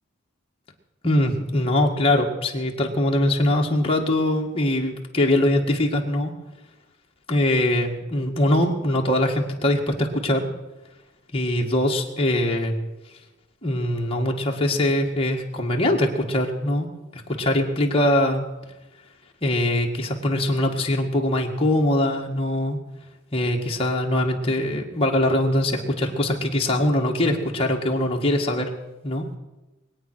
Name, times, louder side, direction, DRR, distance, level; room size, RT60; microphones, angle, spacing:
voice 1, 1.0-6.3 7.3-10.5 11.3-12.8 13.6-16.9 17.1-18.5 19.4-22.8 23.3-28.7 29.0-29.3, left 1 dB, 25° left, 0 dB, 1.8 m, -22 dB
22.0 x 8.9 x 6.2 m, 1.0 s
head